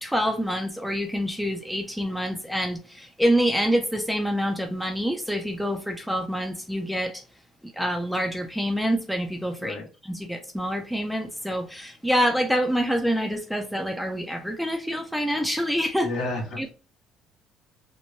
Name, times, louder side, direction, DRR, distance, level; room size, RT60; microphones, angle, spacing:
voice 1, 0.0-7.2 7.6-9.8 10.0-16.1 16.6-16.7, equal, ahead, 0.4 m, -26 dB
voice 2, 16.0-16.7, left 2 dB, 70° left, 1.1 m, -31 dB
3.0 x 2.1 x 2.6 m
cardioid pair, 135°, 0 cm